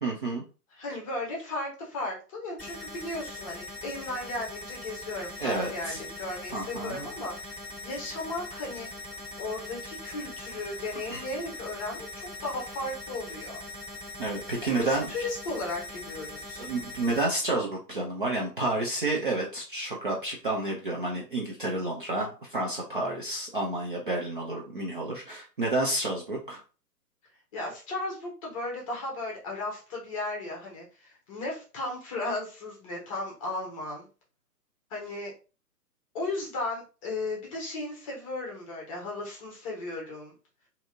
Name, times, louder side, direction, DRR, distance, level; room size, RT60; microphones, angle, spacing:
voice 1, 0.0-0.4 5.4-6.0 6.5-7.1 11.1-11.2 14.2-15.1 16.6-26.6, right 2 dB, 35° right, -3 dB, 0.4 m, -30 dB
voice 2, 0.8-8.9 9.4-13.6 14.6-16.6 27.5-34.1 34.9-35.3 36.1-40.3, left 2 dB, 20° left, -1 dB, 0.7 m, -35 dB
sound 1, 2.6-17.2, left 2 dB, 10° right, 1.4 m, -41 dB
2.7 x 2.7 x 2.4 m, 0.34 s
figure-of-eight pair, 130°, 50 cm